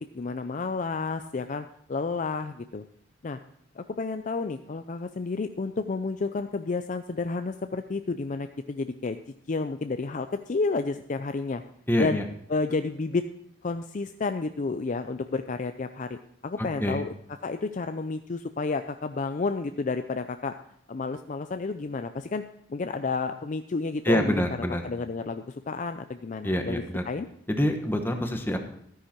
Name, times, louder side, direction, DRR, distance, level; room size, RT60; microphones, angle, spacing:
voice 1, 0.1-2.8 3.2-3.4 3.8-9.2 9.5-11.6 12.0-12.2 12.5-13.2 13.6-17.1 17.4-20.6 20.9-22.4 22.7-24.4 24.8-27.3, left 4 dB, 40° left, 8 dB, 0.4 m, -31 dB
voice 2, 11.9-12.2 16.8-17.0 24.0-24.8 26.4-27.0 27.5-28.6, equal, 10° left, 4 dB, 1.2 m, -26 dB
13.0 x 9.7 x 4.4 m, 0.68 s
head